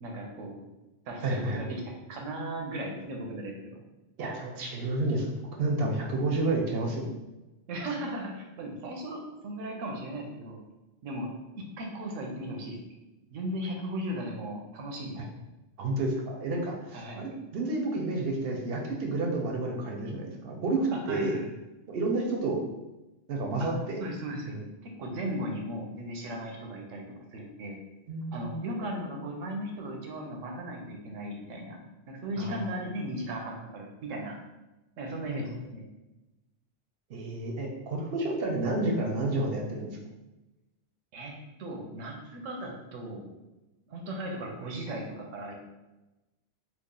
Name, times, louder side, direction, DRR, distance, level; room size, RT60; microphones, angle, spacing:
voice 1, 0.0-0.7 1.1-3.8 7.7-10.6 11.0-11.3 11.6-12.8 13.3-15.3 16.9-17.3 20.9-21.6 23.6-23.7 24.0-27.0 27.3-27.8 28.3-31.8 32.1-34.4 35.0-35.9 41.1-41.3 41.6-43.3 43.9-45.5, right 1 dB, 90° right, 1 dB, 1.0 m, -37 dB
voice 2, 1.2-1.6 4.2-5.3 5.6-7.1 15.2-15.3 15.8-21.3 21.9-22.6 23.3-24.0 24.5-24.6 28.1-28.6 32.4-32.6 35.3-35.5 37.1-40.0, right 2 dB, 60° right, 1 dB, 0.7 m, -30 dB
3.1 x 2.4 x 3.6 m, 1.0 s
omnidirectional pair, 1.3 m